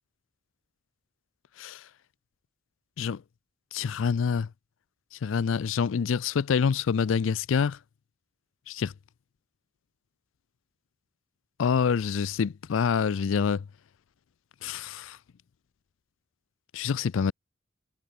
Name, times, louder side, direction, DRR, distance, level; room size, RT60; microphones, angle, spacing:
voice 1, 3.7-4.5 5.2-7.8 8.7-8.9 11.6-13.6 14.6-15.2 16.7-17.3, left 6 dB, 85° left, 0.4 m, -26 dB
head